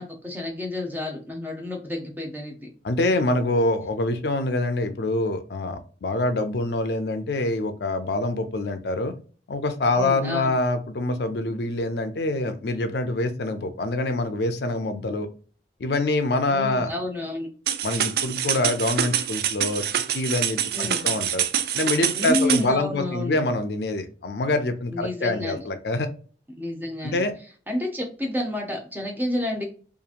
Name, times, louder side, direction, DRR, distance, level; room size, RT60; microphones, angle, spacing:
voice 1, 0.0-2.7 9.9-10.5 16.5-17.5 20.7-21.0 22.1-23.3 24.9-25.6 26.5-27.2 27.7-29.6, left 1 dB, 10° right, 1 dB, 0.7 m, -30 dB
voice 2, 2.8-9.1 9.5-15.3 15.8-16.9 17.8-19.8 20.1-21.4 21.7-26.1 27.0-27.3, left 2 dB, 70° left, 8 dB, 0.5 m, -25 dB
sound 1, 17.7-22.7, right 9 dB, 60° right, 0.3 m, -26 dB
2.9 x 2.5 x 2.4 m, 0.40 s
head